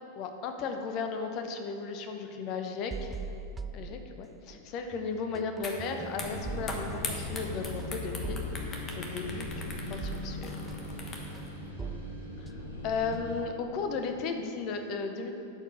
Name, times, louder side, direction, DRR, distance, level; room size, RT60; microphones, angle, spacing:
voice 1, 0.2-3.1 3.7-8.4 8.7-10.5 12.4-12.5 12.8-15.3, left 4 dB, 40° left, 6 dB, 0.8 m, -35 dB
sound 1, 2.9-4.6 4.9-13.6, right 4 dB, 15° right, 0.3 m, -43 dB
sound 2, 5.6-5.8 6.1-11.5, left 3 dB, 25° left, 1.2 m, -41 dB
sound 3, 6.1-13.4, left 2 dB, 65° left, 2.0 m, -39 dB
11.5 x 4.7 x 6.2 m, 2.8 s
figure-of-eight pair, 90°, 0 cm